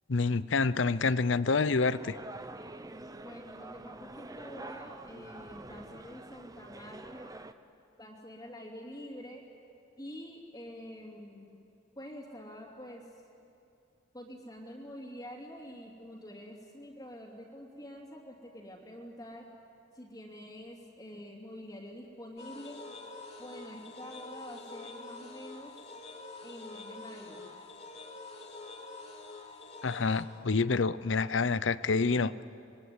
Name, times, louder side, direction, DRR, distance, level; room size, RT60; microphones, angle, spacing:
voice 1, 0.1-2.2 29.8-32.3, left 4 dB, 70° left, 16 dB, 0.7 m, -27 dB
sound 1, 1.9-7.5, right 2 dB, 20° right, 0.8 m, -46 dB
voice 2, 3.2-7.3 8.0-9.5 10.0-11.6 11.9-13.0 14.1-19.5 19.9-22.8 23.4-26.0 26.4-27.5, equal, 20° left, -1 dB, 2.8 m, -47 dB
sound 2, 22.4-30.2, left 3 dB, 35° left, 3.1 m, -46 dB
25.5 x 21.5 x 9.7 m, 2.6 s
head